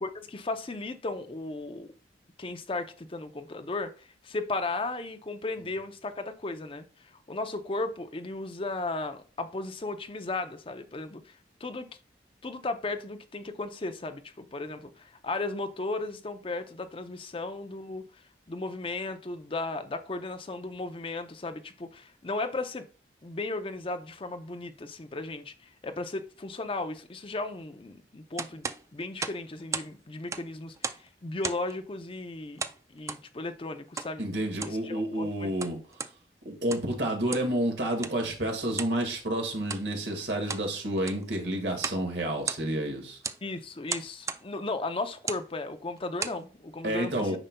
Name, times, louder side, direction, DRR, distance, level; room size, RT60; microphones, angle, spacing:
voice 1, 0.0-1.9 2.4-11.4 11.6-11.9 12.4-18.1 18.5-22.9 23.2-28.7 28.9-34.3 34.6-35.5 43.4-47.4, left 2 dB, 30° left, 0.6 m, -35 dB
sound 1, 28.4-29.9 30.2-31.1 31.4-31.8 32.6-33.2 34.0-34.1 34.5-34.8 35.4-36.1 36.6-36.9 37.3-37.5 38.0-38.2 38.7-39.0 39.6-39.9 40.3-40.7 41.0-41.3 41.8-42.0 42.3-42.9 43.2-43.4 43.9-44.4 45.1-45.5 46.0-46.4, right 5 dB, 15° right, 0.3 m, -35 dB
voice 2, 34.2-35.8 36.4-43.2 46.8-47.4, right 1 dB, 70° right, 1.8 m, -30 dB
8.9 x 5.4 x 2.2 m
head